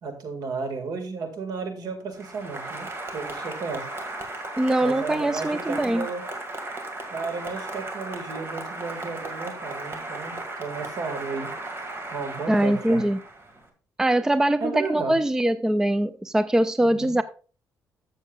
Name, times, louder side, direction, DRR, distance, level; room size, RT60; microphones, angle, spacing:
voice 1, 0.0-3.9 4.8-6.3 7.1-11.5 12.1-13.0 14.6-15.2 16.8-17.2, right 4 dB, 70° right, 2.0 m, -33 dB
Applause, 2.1-13.6, right 2 dB, 35° right, 2.0 m, -36 dB
voice 2, 4.6-6.1 12.5-13.2 14.0-17.2, right 1 dB, 10° right, 0.4 m, -22 dB
13.5 x 7.1 x 2.4 m
cardioid pair, 120°, 7 cm